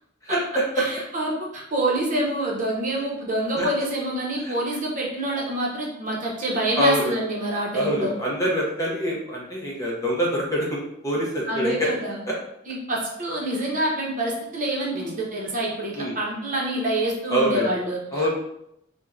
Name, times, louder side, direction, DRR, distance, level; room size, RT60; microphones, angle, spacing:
voice 1, 0.2-0.8 3.6-3.7 4.5-4.6 6.8-7.1 7.7-11.9 12.3-12.4 14.9-15.1 16.0-16.1 17.3-17.7 18.1-18.3, equal, 15° left, -3 dB, 0.6 m, -25 dB
voice 2, 0.8-8.1 11.5-12.2 12.7-18.3, right 1 dB, 40° right, -3 dB, 0.8 m, -26 dB
4.4 x 2.1 x 2.4 m, 0.78 s
head